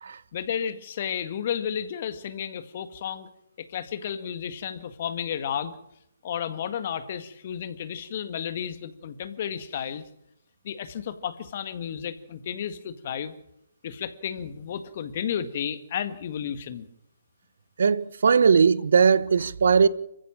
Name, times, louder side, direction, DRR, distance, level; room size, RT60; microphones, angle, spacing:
voice 1, 0.3-3.3 3.6-5.8 6.2-10.0 10.6-13.3 13.8-16.9, left 8 dB, 45° left, 1.9 m, -32 dB
voice 2, 17.8-19.9, right 6 dB, 65° right, 1.0 m, -19 dB
26.5 x 15.0 x 7.4 m
figure-of-eight pair, 140°, 0 cm